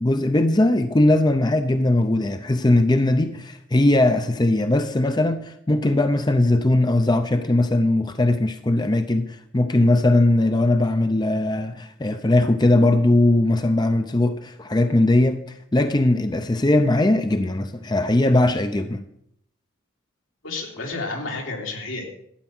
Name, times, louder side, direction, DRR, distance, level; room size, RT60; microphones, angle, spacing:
voice 1, 0.0-15.4 15.7-19.0, left 2 dB, 20° left, 0.6 m, -19 dB
voice 2, 20.4-22.1, left 3 dB, 80° left, 2.8 m, -30 dB
12.5 x 9.0 x 6.1 m
head